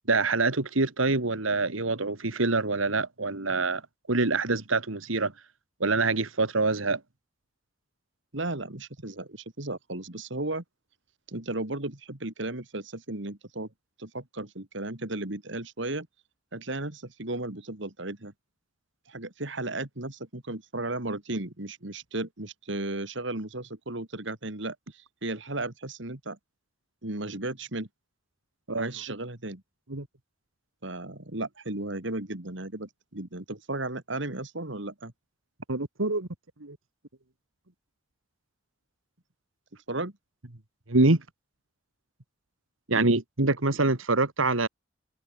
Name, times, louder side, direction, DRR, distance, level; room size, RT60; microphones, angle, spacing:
voice 1, 0.1-3.8 4.1-5.3 5.8-7.0 28.7-28.9 29.9-30.1 35.7-36.3 36.6-36.8 40.9-41.2 42.9-44.7, right 3 dB, 90° right, 2.1 m, -25 dB
voice 2, 8.3-10.6 11.3-13.7 14.0-16.1 16.5-18.3 19.1-26.4 27.0-27.9 28.8-29.6 30.8-35.1 39.9-40.1, right 2 dB, 65° right, 2.6 m, -35 dB
head